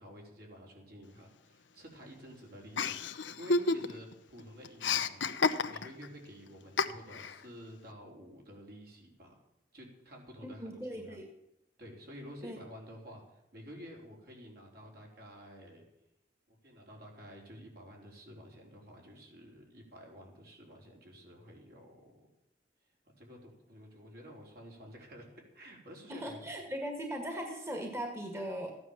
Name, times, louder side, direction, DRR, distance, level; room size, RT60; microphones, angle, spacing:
voice 1, 0.0-3.0 3.4-9.3 9.7-11.2 11.8-15.9 16.5-22.3 23.1-26.5, equal, 60° right, 0 dB, 4.1 m, -51 dB
Chuckle chortle, 2.8-4.1 4.4-6.1 6.8-7.4, left 4 dB, 90° left, 0.8 m, -30 dB
voice 2, 10.4-11.3 12.4-12.6 26.1-28.8, equal, 15° right, 3 dB, 1.7 m, -39 dB
15.0 x 9.6 x 7.2 m, 0.88 s
head